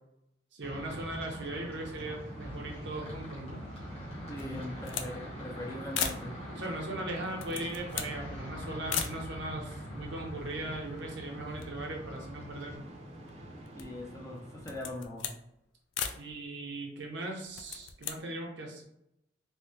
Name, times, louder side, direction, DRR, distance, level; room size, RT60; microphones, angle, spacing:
voice 1, 0.5-3.6 6.5-12.9 16.1-18.8, right 2 dB, 70° right, 0 dB, 0.8 m, -39 dB
sound 1, 0.6-12.7, equal, 35° left, 1.1 m, -44 dB
sound 2, 0.7-15.0, equal, 35° right, 0.6 m, -48 dB
voice 2, 4.3-6.4 13.7-15.3, left 1 dB, 15° left, -1 dB, 0.5 m, -41 dB
sound 3, 4.4-5.1 5.4-5.5 5.9-6.3 7.2-8.2 8.9-9.2 10.0-10.1 10.3-11.2 11.5-12.8 13.3-14.0 14.6-15.4 15.9-16.2 17.4-18.2, left 8 dB, 90° left, 0.3 m, -37 dB
3.3 x 2.2 x 2.7 m, 0.80 s
head